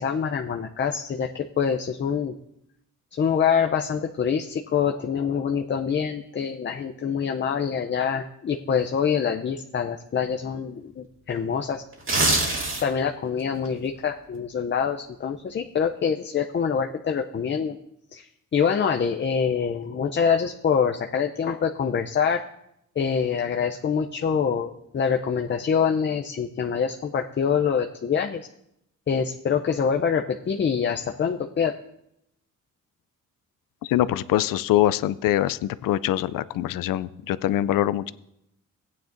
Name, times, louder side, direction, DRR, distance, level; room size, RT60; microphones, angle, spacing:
voice 1, 0.0-2.3 3.2-11.8 12.8-17.8 18.1-22.4 23.0-28.5 29.1-31.7, left 7 dB, 35° left, 4 dB, 0.6 m, -25 dB
sound 1, 11.9-13.1 13.5-13.7, right 2 dB, 40° right, 2.4 m, -23 dB
voice 2, 33.8-38.1, left 13 dB, 90° left, 17 dB, 0.5 m, -23 dB
15.5 x 9.4 x 2.6 m, 0.80 s
cardioid pair, 100°, 32 cm